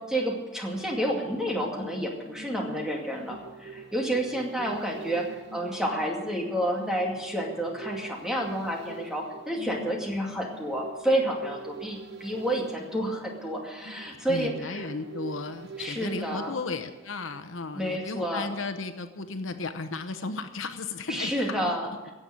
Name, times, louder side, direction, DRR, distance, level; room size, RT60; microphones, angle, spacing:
voice 1, 0.0-14.8 15.8-16.5 17.7-18.5 21.1-21.9, right 1 dB, 5° right, -1 dB, 2.4 m, -30 dB
sound 1, 1.6-17.7 18.0-18.1, right 4 dB, 60° right, 1.0 m, -44 dB
voice 2, 14.1-21.7, left 3 dB, 80° left, 9 dB, 1.0 m, -35 dB
16.5 x 7.2 x 9.3 m, 1.2 s
head